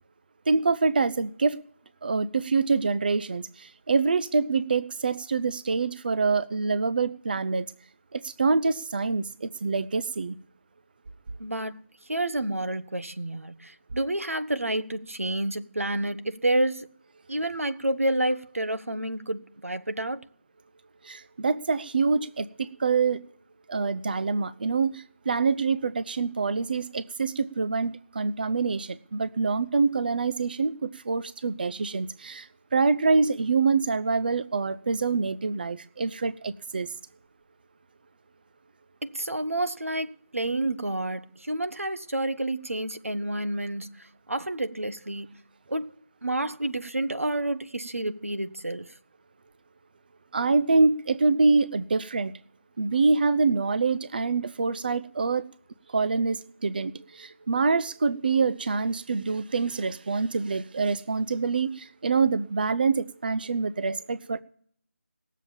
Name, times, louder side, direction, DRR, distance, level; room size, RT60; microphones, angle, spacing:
voice 1, 0.5-1.6 2.0-7.7 8.1-10.3 21.0-23.2 23.7-32.5 32.7-36.9 50.3-52.3 52.8-55.4 55.9-64.4, right 4 dB, 45° right, 0.5 m, -25 dB
voice 2, 11.4-11.8 12.1-16.9 17.3-20.2 39.0-45.3 45.7-48.9, right 1 dB, 90° right, 1.0 m, -29 dB
18.0 x 7.4 x 7.0 m
figure-of-eight pair, 160°, 7 cm